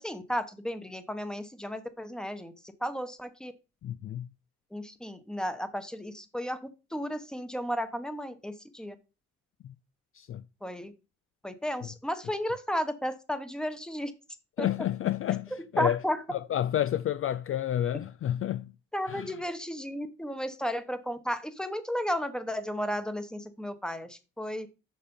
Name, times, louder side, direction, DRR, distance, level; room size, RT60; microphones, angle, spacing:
voice 1, 0.0-2.5 2.8-3.5 4.7-6.6 6.9-8.9 10.6-10.9 11.4-14.1 14.6-14.7 15.8-16.2 18.9-24.7, equal, ahead, 1.1 m, -33 dB
voice 2, 3.8-4.3 9.6-9.7 10.1-10.4 14.6-16.0 16.3-18.7 19.1-19.4, left 11 dB, 45° left, 0.4 m, -30 dB
6.7 x 5.0 x 5.5 m
cardioid pair, 90°, 30 cm